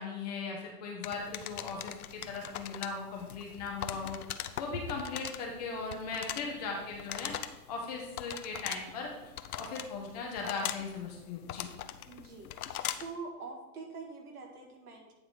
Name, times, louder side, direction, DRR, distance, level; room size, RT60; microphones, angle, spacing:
voice 1, 0.0-4.2 4.6-7.3 7.7-9.1 9.6-11.7, left 4 dB, 25° left, 0 dB, 0.8 m, -38 dB
sound 1, 1.0-13.2, left 10 dB, 60° left, 0.6 m, -42 dB
voice 2, 4.7-5.1 12.1-12.5 13.0-15.1, right 4 dB, 60° right, 1 dB, 1.9 m, -45 dB
9.1 x 3.7 x 4.8 m, 1.0 s
hypercardioid pair, 145°, 49 cm